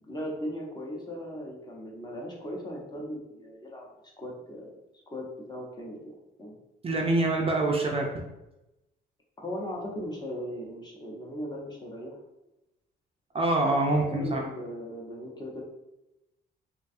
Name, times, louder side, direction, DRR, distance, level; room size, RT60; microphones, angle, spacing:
voice 1, 0.0-3.9 4.2-4.8 5.1-6.6 9.4-12.2 13.9-15.6, equal, 20° left, -2 dB, 0.7 m, -38 dB
voice 2, 6.8-8.2 13.3-14.4, right 2 dB, 30° right, 0 dB, 0.4 m, -25 dB
2.4 x 2.3 x 2.6 m, 0.93 s
cardioid pair, 90°, 20 cm